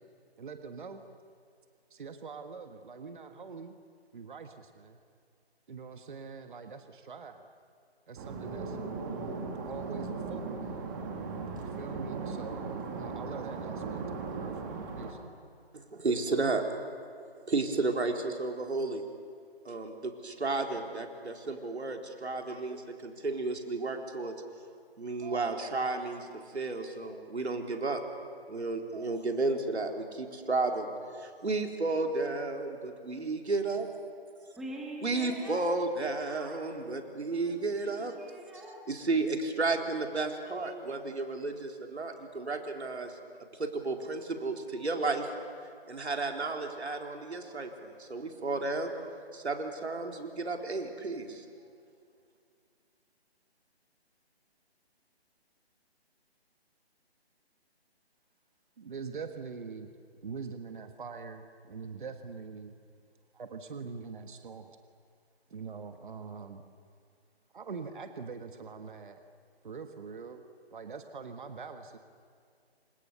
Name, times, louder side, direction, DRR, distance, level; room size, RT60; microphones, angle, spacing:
voice 1, 0.4-1.0 1.9-3.8 4.1-5.0 5.7-7.5 8.1-8.8 9.6-10.9 11.6-14.1 14.3-15.2 58.8-62.7 63.3-64.8 65.5-66.6 67.5-69.2 69.6-70.4 70.7-72.0, right 5 dB, 50° right, 7 dB, 1.7 m, -43 dB
sound 1, 8.2-15.1, right 4 dB, 20° right, 2.1 m, -38 dB
voice 2, 15.7-16.6 17.5-19.0 19.6-24.3 25.0-28.0 28.5-30.9 31.1-33.9 35.0-38.1 38.9-43.2 43.5-45.3 45.9-51.4, right 3 dB, 90° right, 3 dB, 4.1 m, -33 dB
voice 3, 34.6-35.7 36.0-36.7 37.3-38.8, right 1 dB, ahead, -2 dB, 1.1 m, -45 dB
29.5 x 26.0 x 7.0 m, 2.3 s
hypercardioid pair, 165°, 32 cm